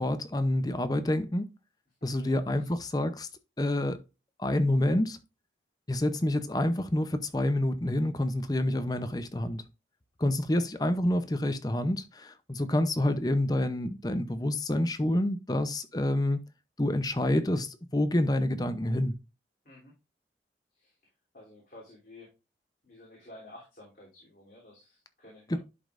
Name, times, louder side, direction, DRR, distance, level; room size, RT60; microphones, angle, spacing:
voice 1, 0.0-1.5 2.0-3.3 3.6-4.0 4.4-5.2 5.9-9.6 10.2-16.4 16.8-19.1 25.5-25.6, left 1 dB, 20° left, 0.7 m, -28 dB
voice 2, 2.0-2.7 10.5-10.6 19.6-19.9 20.8-20.9 21.3-22.3 22.8-25.6, left 1 dB, 50° left, 3.1 m, -52 dB
11.0 x 5.2 x 2.5 m
head